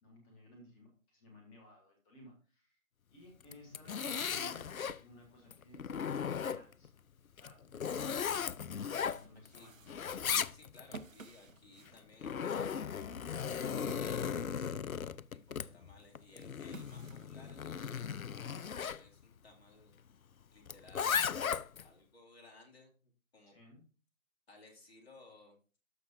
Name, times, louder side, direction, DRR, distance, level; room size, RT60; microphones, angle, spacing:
voice 1, 0.0-2.8 3.1-6.9 7.3-8.4 9.0-9.9 23.5-23.8, left 1 dB, 10° left, 1 dB, 1.2 m, -58 dB
Zipper (clothing), 3.4-5.0 5.5-6.9 7.4-9.6 9.9-11.0 11.9-19.0 20.7-21.9, left 7 dB, 85° left, 0.5 m, -37 dB
sound 1, 8.6-15.0 15.4-18.0, right 4 dB, 70° right, 0.9 m, -55 dB
voice 2, 10.3-15.1 15.5-19.9 20.5-21.3 21.8-23.6 24.5-25.6, left 2 dB, 45° left, 1 dB, 2.9 m, -60 dB
12.5 x 6.1 x 2.8 m, 0.36 s
figure-of-eight pair, 150°, 41 cm